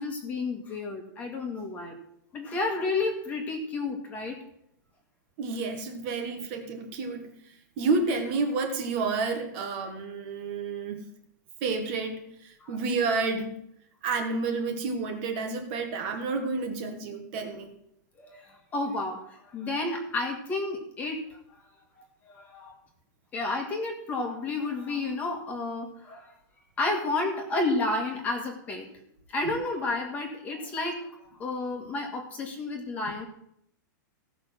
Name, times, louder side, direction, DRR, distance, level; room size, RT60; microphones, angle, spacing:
voice 1, 0.0-1.9 2.3-4.4 12.6-12.8 18.2-21.4 22.2-22.8 23.3-26.3 26.8-28.9 29.3-31.1 31.4-33.3, left 2 dB, 15° left, 2 dB, 1.9 m, -31 dB
voice 2, 5.4-7.3 7.8-11.0 11.6-13.6 14.0-17.7, right 4 dB, 30° right, 4 dB, 1.6 m, -30 dB
16.0 x 5.9 x 6.3 m, 0.73 s
supercardioid pair, 175°, 10 cm